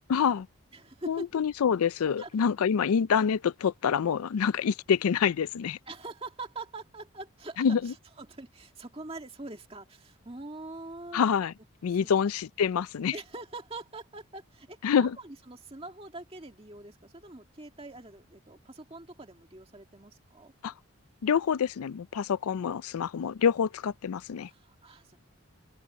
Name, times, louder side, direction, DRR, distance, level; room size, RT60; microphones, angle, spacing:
voice 1, 0.1-0.5 1.1-5.8 7.6-7.9 11.1-11.5 11.8-13.1 14.8-15.2 20.6-20.7 21.2-24.5, left 7 dB, 85° left, 0.4 m, -26 dB
voice 2, 0.7-1.3 2.2-2.3 5.9-11.3 11.9-12.1 13.1-20.5 24.4-25.2, right 2 dB, 25° right, 2.1 m, -44 dB
open air
head